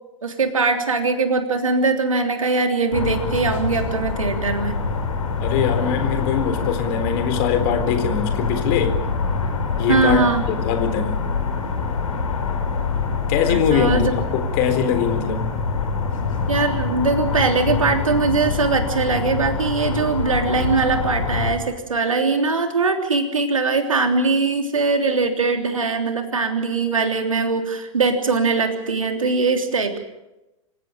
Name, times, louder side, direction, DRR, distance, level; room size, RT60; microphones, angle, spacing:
voice 1, 0.2-4.8 9.9-10.4 13.5-14.1 16.5-30.0, right 4 dB, 80° right, 5 dB, 3.4 m, -21 dB
sound 1, 2.9-21.5, left 5 dB, 75° left, 4.9 m, -25 dB
voice 2, 5.4-9.0 9.8-11.2 13.3-15.5, left 7 dB, 50° left, 8 dB, 3.9 m, -22 dB
27.0 x 16.0 x 9.0 m, 0.96 s
figure-of-eight pair, 95°, 17 cm